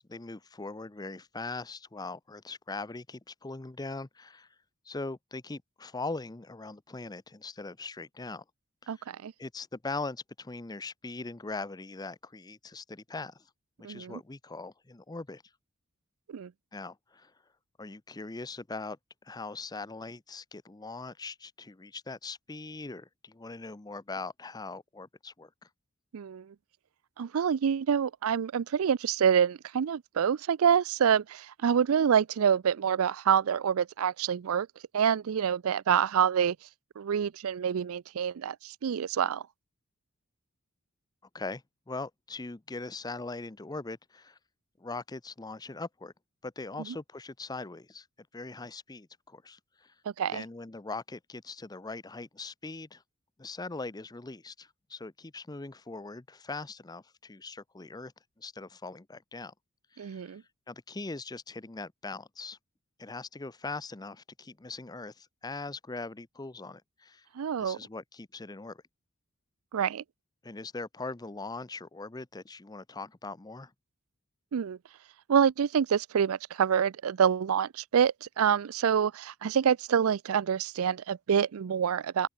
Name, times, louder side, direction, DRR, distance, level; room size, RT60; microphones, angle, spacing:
voice 1, 0.0-4.5 4.9-8.4 8.8-9.1 9.4-13.4 13.9-15.4 16.7-17.3 17.8-19.0 19.2-25.7 41.3-44.4 44.8-46.1 46.4-48.1 48.3-49.9 50.3-53.0 53.4-58.1 58.4-59.5 59.9-60.4 60.7-62.6 63.0-67.3 67.6-68.8 70.4-73.7, left 3 dB, 20° left, 0.6 m, -41 dB
voice 2, 8.9-9.3 13.8-14.2 16.3-16.5 26.1-26.5 27.2-34.7 34.9-36.6 37.0-39.4 50.2-50.4 60.0-60.4 67.4-67.8 69.7-70.0 74.5-74.8 75.3-82.3, right 8 dB, 80° right, 0.4 m, -27 dB
open air
head